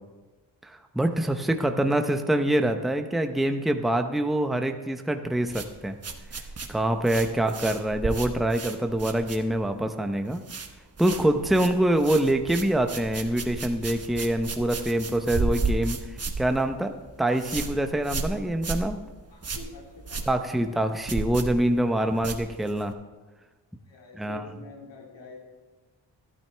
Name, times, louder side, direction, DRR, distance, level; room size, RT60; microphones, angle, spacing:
voice 1, 0.6-6.0 6.7-10.4 11.0-16.9 17.2-19.0 20.3-22.9 24.1-24.4, right 1 dB, ahead, 6 dB, 0.7 m, -25 dB
voice 2, 1.3-1.9 7.3-7.6 11.4-11.8 19.3-20.5 23.9-25.4, left 3 dB, 85° left, -1 dB, 2.8 m, -47 dB
sound 1, 5.5-9.8 10.1-10.7 11.0-22.9, right 4 dB, 35° right, 1.1 m, -34 dB
12.0 x 12.0 x 3.4 m, 1.2 s
cardioid pair, 80°, 43 cm